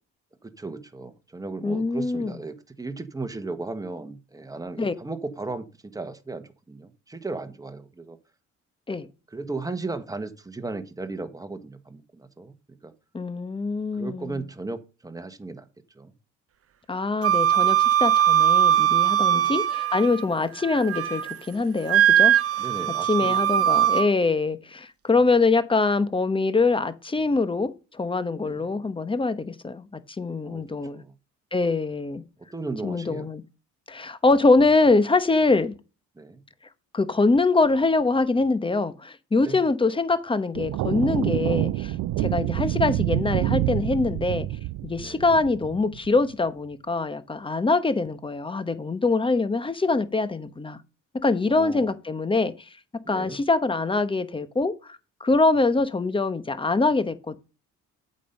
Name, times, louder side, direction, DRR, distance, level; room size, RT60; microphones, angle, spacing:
voice 1, 0.4-8.2 9.3-12.5 12.8-12.9 13.9-15.7 15.9-16.1 19.3-19.5 20.2-20.4 22.6-23.9 28.4-28.7 30.4-30.6 30.9-31.1 32.5-33.3 36.2-36.4 39.4-39.6 42.2-42.5 45.0-45.2 51.5-51.9 53.0-53.4, right 3 dB, 10° right, 1.4 m, -36 dB
voice 2, 1.6-2.4 4.8-4.9 8.9-9.1 13.1-14.4 16.9-21.2 21.5-22.3 23.1-31.0 31.5-32.2 32.8-33.4 33.9-35.8 36.9-44.5 44.8-50.8 51.2-52.5 53.1-57.4, left 3 dB, 15° left, 1.0 m, -24 dB
Wind instrument woodwind instrument, 17.2-20.2 20.6-21.4 21.9-24.1, right 11 dB, 50° right, 0.9 m, -20 dB
sound 1, 40.6-46.2, right 15 dB, 75° right, 0.5 m, -27 dB
8.4 x 5.4 x 5.4 m
cardioid pair, 90°, 30 cm